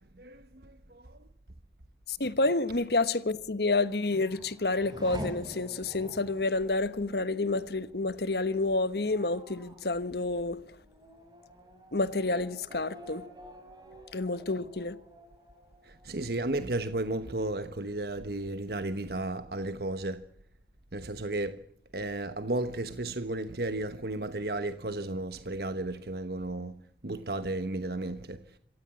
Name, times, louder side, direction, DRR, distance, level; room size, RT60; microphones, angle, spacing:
voice 1, 0.2-1.2 15.8-20.2 20.9-21.6 21.9-26.8 27.0-28.4, right 2 dB, 60° right, 1.2 m, -34 dB
voice 2, 2.1-10.6 11.9-13.2 14.1-14.9, left 2 dB, 65° left, 1.3 m, -29 dB
Race car auto racing / Accelerating revving vroom, 3.6-16.9 17.2-17.9, right 1 dB, 25° right, 5.3 m, -48 dB
26.5 x 16.0 x 7.3 m
head